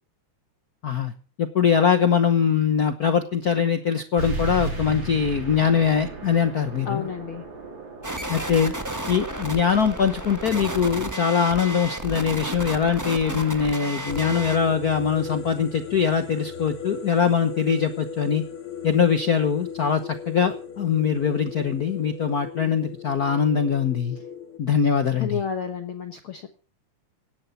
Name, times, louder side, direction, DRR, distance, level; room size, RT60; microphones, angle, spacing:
voice 1, 1.4-7.1 8.3-8.7 9.1-18.4 18.8-24.2 24.6-25.4, left 7 dB, 85° left, 8 dB, 0.8 m, -22 dB
sound 1, 4.2-19.3, right 3 dB, 40° right, 4.3 m, -38 dB
voice 2, 6.9-7.4 25.2-26.5, left 7 dB, 55° left, 6 dB, 1.7 m, -31 dB
sound 2, 8.0-14.6, right 1 dB, 25° right, 0.4 m, -32 dB
sound 3, 14.1-24.6, left 6 dB, 70° left, 2.9 m, -37 dB
17.5 x 11.0 x 5.8 m, 0.39 s
omnidirectional pair, 3.3 m